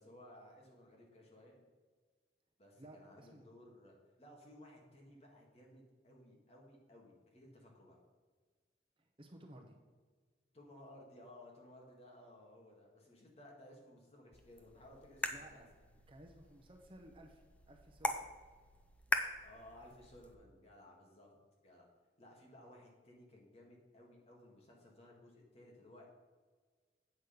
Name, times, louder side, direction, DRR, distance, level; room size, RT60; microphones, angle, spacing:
voice 1, 0.0-1.6 2.6-8.0 10.5-15.6 19.4-21.3 21.6-21.9 22.2-26.1, left 1 dB, 35° left, -1 dB, 1.9 m, -58 dB
voice 2, 2.8-3.5 9.0-9.8 15.3-15.7 16.1-18.3 22.6-22.8, right 1 dB, 30° right, 3 dB, 0.8 m, -57 dB
sound 1, 14.3-20.3, left 1 dB, 5° left, 0.5 m, -42 dB
8.3 x 6.3 x 5.1 m, 1.5 s
head